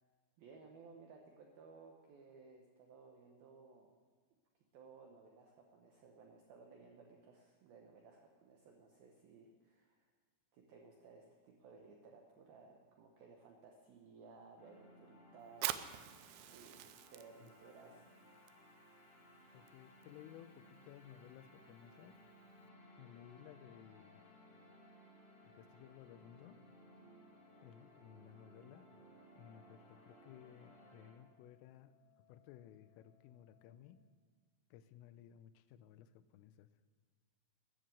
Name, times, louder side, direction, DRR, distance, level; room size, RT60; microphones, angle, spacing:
voice 1, 0.4-4.0 4.7-10.1 10.5-15.9 16.4-18.0, right 4 dB, 75° right, 1 dB, 2.2 m, -59 dB
sound 1, 14.6-31.1, equal, 35° left, 3.0 m, -62 dB
Fire, 15.5-22.7, right 14 dB, 90° right, 2.4 m, -48 dB
voice 2, 19.5-22.2 23.0-24.3 25.4-26.6 27.6-28.9 29.3-31.9 32.3-34.0 34.7-36.7, left 11 dB, 85° left, 12 dB, 3.3 m, -58 dB
Organ, 23.4-34.5, left 8 dB, 55° left, 2.5 m, -73 dB
14.0 x 10.5 x 7.8 m, 1.5 s
omnidirectional pair, 5.8 m